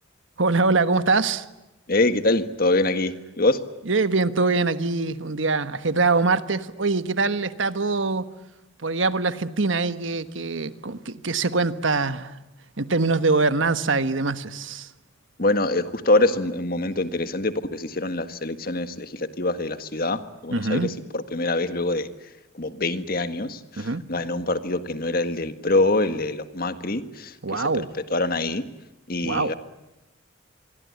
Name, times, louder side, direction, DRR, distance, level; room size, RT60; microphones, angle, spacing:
voice 1, 0.4-1.5 3.9-8.3 8.8-12.4 12.8-14.9 20.5-20.9 23.8-24.0 27.4-27.9 29.2-29.5, right 3 dB, 70° right, 12 dB, 1.4 m, -23 dB
voice 2, 1.9-3.6 15.4-22.1 22.5-27.7 28.1-28.7 29.1-29.5, left 2 dB, 45° left, 10 dB, 1.7 m, -24 dB
26.5 x 23.5 x 9.6 m, 0.97 s
head